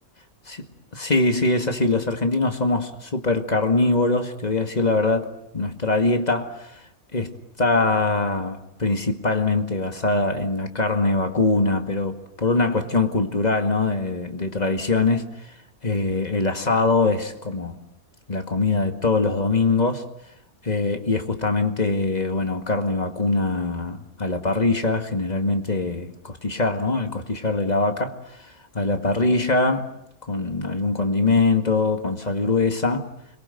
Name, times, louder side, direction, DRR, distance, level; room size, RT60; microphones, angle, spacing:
voice 1, 0.9-6.7 7.1-15.3 15.8-17.8 18.3-20.1 20.6-28.2 28.7-29.9 30.3-33.1, left 3 dB, 30° left, 2.1 m, -23 dB
29.5 x 23.0 x 8.0 m
omnidirectional pair, 1.4 m